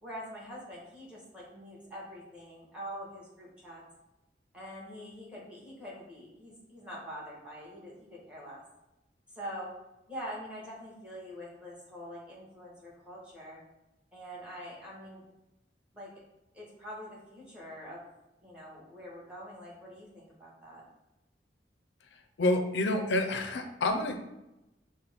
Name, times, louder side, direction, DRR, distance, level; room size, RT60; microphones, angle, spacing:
voice 1, 0.0-3.8 4.5-8.6 9.3-9.7 10.1-13.6 14.1-15.3 15.9-16.1 16.5-18.0 18.4-20.8, equal, 5° right, -6 dB, 1.3 m, -44 dB
voice 2, 22.4-24.2, left 2 dB, 75° left, 5 dB, 0.5 m, -28 dB
5.9 x 2.2 x 3.5 m, 0.93 s
head